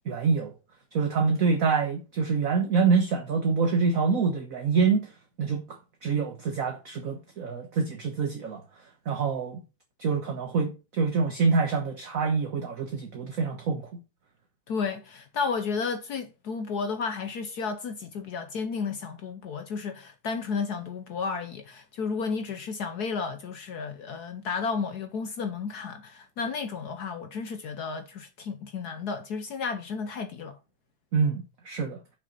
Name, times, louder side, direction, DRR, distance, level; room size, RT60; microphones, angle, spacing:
voice 1, 0.0-0.5 0.9-5.1 5.4-8.6 9.0-9.6 10.0-14.0 31.1-32.0, right 5 dB, 50° right, 1.3 m, -26 dB
voice 2, 14.7-30.6, left 5 dB, 60° left, 1.1 m, -32 dB
6.8 x 6.2 x 5.1 m
omnidirectional pair, 2.3 m